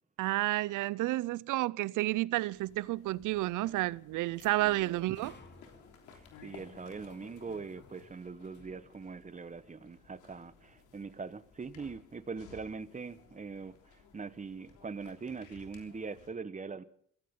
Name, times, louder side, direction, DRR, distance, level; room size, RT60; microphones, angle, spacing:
voice 1, 0.2-5.4, right 18 dB, 85° right, 0.6 m, -31 dB
sound 1, 2.5-16.3, left 6 dB, 90° left, 3.3 m, -58 dB
sound 2, 3.7-8.9, left 3 dB, 35° left, 3.3 m, -59 dB
voice 2, 6.1-16.8, right 4 dB, 25° right, 1.2 m, -42 dB
23.0 x 16.5 x 3.8 m
cardioid pair, 90°, 30 cm